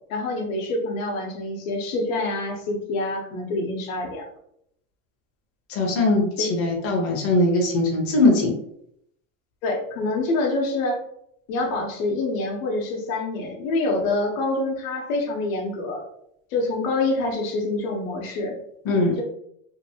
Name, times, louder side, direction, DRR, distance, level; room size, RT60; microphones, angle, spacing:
voice 1, 0.1-4.3 6.4-6.5 9.6-11.0 11.5-16.0 16.5-18.6, left 2 dB, 90° left, 0 dB, 0.9 m, -26 dB
voice 2, 5.7-8.5 18.8-19.2, left 2 dB, 35° left, -1 dB, 0.8 m, -21 dB
2.8 x 2.6 x 2.8 m, 0.72 s
cardioid pair, 155°, 39 cm